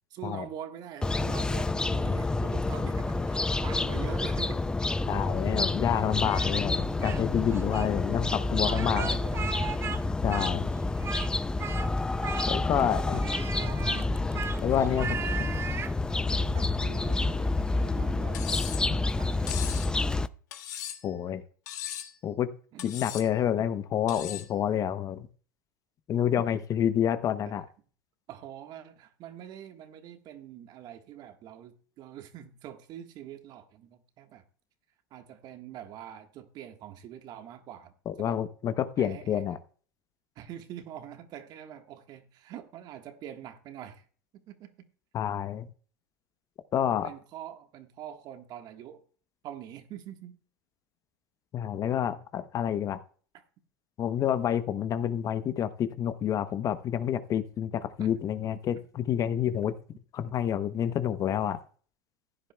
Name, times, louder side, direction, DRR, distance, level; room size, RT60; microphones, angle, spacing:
voice 1, 0.1-4.6 6.2-6.3 6.9-7.0 7.7-10.1 10.6-10.8 12.7-14.4 14.7-15.4 16.1-19.6 22.7-22.9 23.6-23.7 26.4-26.5 27.4-27.5 28.3-34.4 35.1-38.4 39.0-39.4 40.3-44.1 44.3-44.9 47.0-49.0 49.4-50.4 58.0-58.1, right 10 dB, 45° right, 1.5 m, -45 dB
sound 1, 1.0-20.3, left 2 dB, 10° left, 0.4 m, -29 dB
voice 2, 5.1-9.2 10.2-10.6 12.5-13.2 14.6-15.5 21.0-21.4 22.2-22.5 22.8-25.2 26.1-27.6 38.1-39.6 45.1-45.7 46.7-47.1 51.5-53.0 54.0-59.7 60.1-61.6, left 9 dB, 35° left, 0.8 m, -28 dB
Speech, 6.2-7.2 7.5-7.9 8.7-10.0 10.3-11.3 11.6-11.9 12.2-12.8 13.2-16.0, right 7 dB, 25° right, 0.7 m, -37 dB
Cutlery silverware, 18.3-18.9 19.5-19.9 20.5-21.1 21.7-22.2 22.8-23.3 24.1-24.5, left 11 dB, 75° left, 1.8 m, -38 dB
15.5 x 10.0 x 2.3 m
hypercardioid pair, 100°, 9 cm